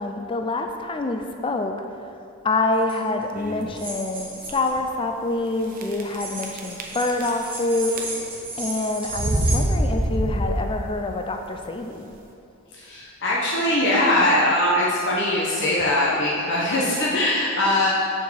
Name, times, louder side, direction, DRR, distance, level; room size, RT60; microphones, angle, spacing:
voice 1, 0.0-1.7 2.4-8.0 8.6-12.1, left 2 dB, 25° left, 5 dB, 0.4 m, -26 dB
sound 1, 2.8-2.9 3.8-4.7 6.1-9.6, right 2 dB, 25° right, 1.7 m, -34 dB
sound 2, 3.4-3.8 4.4-4.5 4.8-4.9 5.8-6.2 6.4-7.6 7.9-8.4 9.1-11.0, right 1 dB, 40° right, 0.8 m, -25 dB
voice 2, 12.8-17.9, left 1 dB, 55° left, -6 dB, 1.0 m, -21 dB
6.9 x 4.6 x 6.3 m, 2.6 s
head